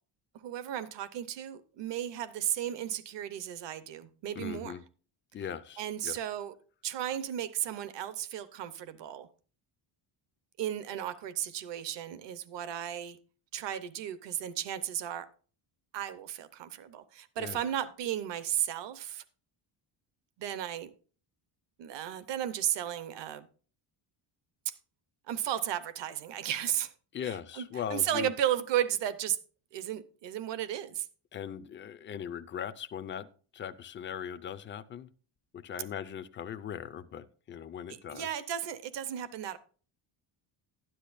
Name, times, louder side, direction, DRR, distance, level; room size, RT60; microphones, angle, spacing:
voice 1, 0.4-4.7 5.8-6.5 6.8-9.3 10.6-13.2 13.5-15.3 15.9-19.2 20.4-20.9 21.8-23.5 24.7-24.8 25.3-26.9 27.2-29.4 29.7-31.1 37.9-39.6, right 11 dB, 60° right, 0.8 m, -34 dB
voice 2, 4.4-4.8 5.3-6.2 17.4-17.6 27.1-28.3 31.3-33.3 33.5-35.1 35.5-38.3, left 9 dB, 25° left, 0.3 m, -39 dB
12.5 x 10.0 x 2.5 m
cardioid pair, 175°, 49 cm